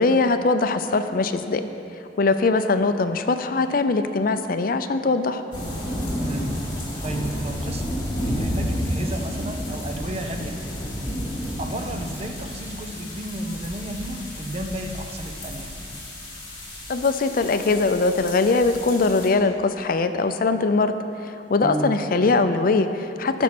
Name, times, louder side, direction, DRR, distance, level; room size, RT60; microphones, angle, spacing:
voice 1, 0.0-1.6 2.2-5.4 16.9-20.9 21.2-23.4, left 3 dB, 50° left, 9 dB, 0.5 m, -21 dB
sound 1, 5.5-19.3, equal, 25° left, 2.6 m, -31 dB
voice 2, 6.2-6.5 7.0-7.8 8.2-10.6 11.6-15.7 21.6-21.9, right 1 dB, 35° right, 5 dB, 0.8 m, -32 dB
14.5 x 6.2 x 6.0 m, 2.6 s
head